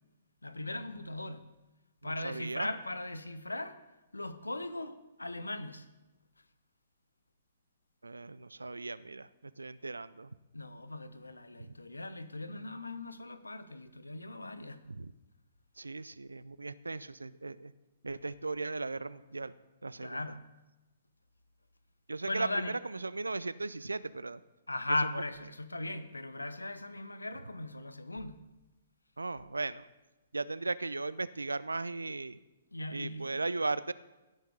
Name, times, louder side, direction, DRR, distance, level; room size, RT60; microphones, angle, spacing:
voice 1, 0.4-1.4 2.0-3.8 4.1-5.9 10.5-14.8 20.0-20.5 22.2-22.8 24.7-28.4 32.7-33.4, left 2 dB, 85° left, 0.8 m, -38 dB
voice 2, 2.0-2.7 8.0-9.3 9.6-10.3 11.6-11.7 14.9-15.1 15.8-17.7 18.0-19.5 19.8-20.2 22.1-24.4 29.2-29.9 30.3-32.4 32.9-33.9, right 3 dB, 80° right, 0.4 m, -37 dB
17.0 x 6.4 x 4.9 m
figure-of-eight pair, 120°, 0 cm